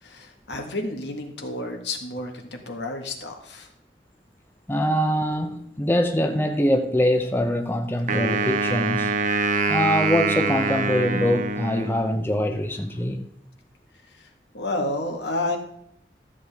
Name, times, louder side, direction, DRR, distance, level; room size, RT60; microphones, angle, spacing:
voice 1, 0.0-3.7 14.1-14.3 14.5-15.6, left 2 dB, 75° left, 1.7 m, -30 dB
voice 2, 4.7-9.2 9.7-13.3, left 1 dB, 15° left, 0.6 m, -23 dB
Wind instrument woodwind instrument, 8.1-12.4, right 4 dB, 45° right, 0.7 m, -25 dB
13.5 x 7.8 x 3.5 m
head